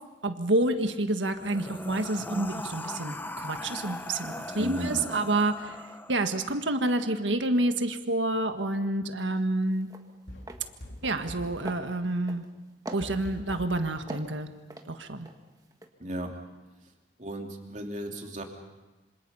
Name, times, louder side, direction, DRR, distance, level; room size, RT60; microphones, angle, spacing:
voice 1, 0.2-5.8 6.1-9.9 11.0-12.5 12.9-14.5 14.9-15.3, right 2 dB, 85° right, 7 dB, 1.7 m, -28 dB
sound 1, 1.3-6.5, left 1 dB, 10° left, 0.7 m, -39 dB
voice 2, 4.6-5.1 16.0-16.3 17.2-18.4, right 1 dB, 40° right, 2 dB, 3.0 m, -35 dB
sound 2, 9.3-9.5 9.8-10.1 10.4-10.6 11.0-11.4 11.6-12.5 12.9-13.6 14.1-15.4 15.7-15.9, right 1 dB, 20° right, 1.7 m, -42 dB
sound 3, 10.3-11.6 13.0-13.8, left 1 dB, 75° left, 3.5 m, -43 dB
26.5 x 26.0 x 5.7 m, 1.1 s
head